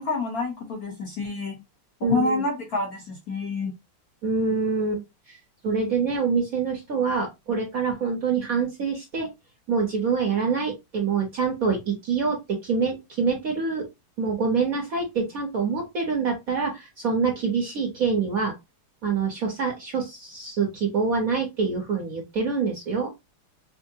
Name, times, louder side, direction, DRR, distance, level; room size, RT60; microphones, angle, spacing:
voice 1, 0.0-1.6 2.0-3.7, left 3 dB, 55° left, 1.1 m, -28 dB
voice 2, 2.0-2.4 4.2-5.0 5.3-5.4 5.6-9.3 9.7-13.9 14.2-18.5 19.0-23.1, right 5 dB, 50° right, 1.1 m, -25 dB
5.3 x 2.1 x 2.7 m
omnidirectional pair, 2.4 m